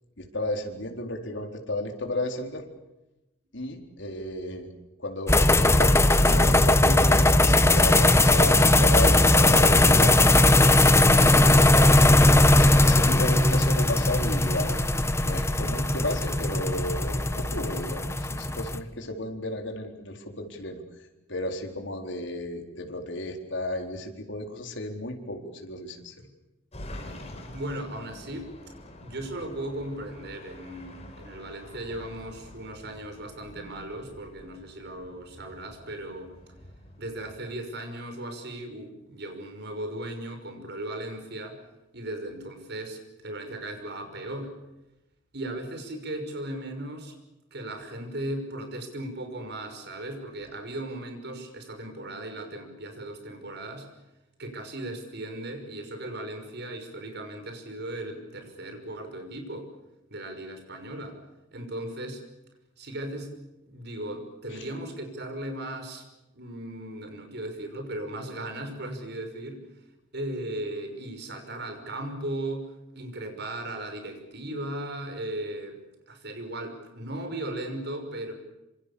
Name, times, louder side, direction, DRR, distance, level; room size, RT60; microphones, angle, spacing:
voice 1, 0.2-2.6 3.5-4.7 5.0-10.3 12.5-14.8 15.2-26.1 64.5-64.7, left 1 dB, 65° left, 3 dB, 4.2 m, -34 dB
sound 1, 5.3-18.8, left 2 dB, 15° left, 1.1 m, -19 dB
sound 2, 26.7-37.3, left 1 dB, 35° left, 5.3 m, -46 dB
voice 2, 27.5-28.5 29.0-36.3 37.0-41.6 41.9-44.5 45.3-47.1 47.5-53.9 54.4-59.7 60.1-61.2 61.5-62.2 62.8-63.3 63.7-66.0 66.3-69.6 70.1-75.8 76.1-78.3, right 1 dB, 60° right, 6 dB, 5.9 m, -37 dB
27.0 x 26.5 x 7.0 m, 0.98 s
head